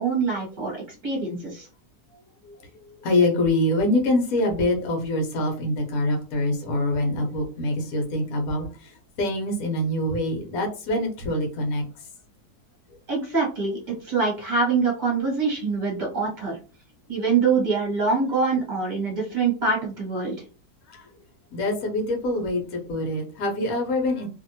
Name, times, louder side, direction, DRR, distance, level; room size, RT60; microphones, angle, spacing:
voice 1, 0.0-1.7 13.1-16.6 17.1-20.4, right 4 dB, 30° right, -3 dB, 1.1 m, -24 dB
voice 2, 3.0-8.9 9.2-11.8 20.9-21.0 21.5-24.3, left 1 dB, 65° left, 2 dB, 1.1 m, -25 dB
2.7 x 2.6 x 2.7 m, 0.36 s
omnidirectional pair, 1.8 m